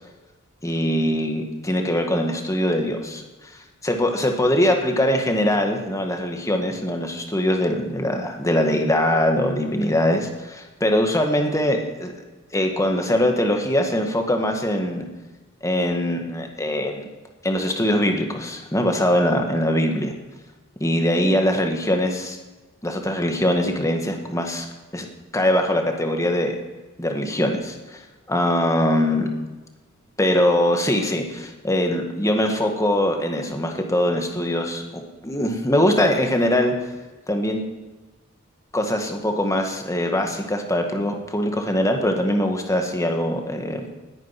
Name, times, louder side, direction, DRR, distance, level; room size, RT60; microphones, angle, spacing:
voice 1, 0.6-3.2 3.8-12.1 12.5-15.1 15.6-17.1 17.4-20.1 20.8-22.4 22.8-24.7 24.9-25.1 25.3-26.6 27.0-28.0 28.3-29.3 30.2-36.8 37.3-37.6 38.7-43.9, left 1 dB, 15° left, 3 dB, 1.8 m, -22 dB
19.5 x 9.1 x 6.0 m, 1.2 s
head